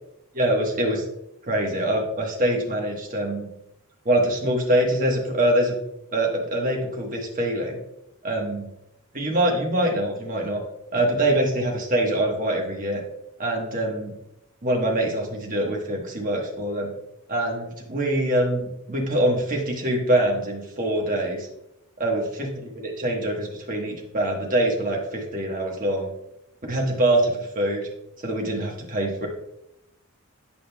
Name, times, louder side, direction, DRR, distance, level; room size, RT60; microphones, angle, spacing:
voice 1, 0.3-1.0 1.5-3.5 4.0-5.7 6.1-7.8 8.2-8.7 9.1-10.6 10.9-13.0 13.4-14.1 14.6-16.9 17.3-21.5 22.0-26.1 26.7-27.9 28.2-29.3, right 1 dB, 40° right, 0 dB, 1.2 m, -24 dB
8.7 x 5.1 x 2.2 m, 0.84 s
head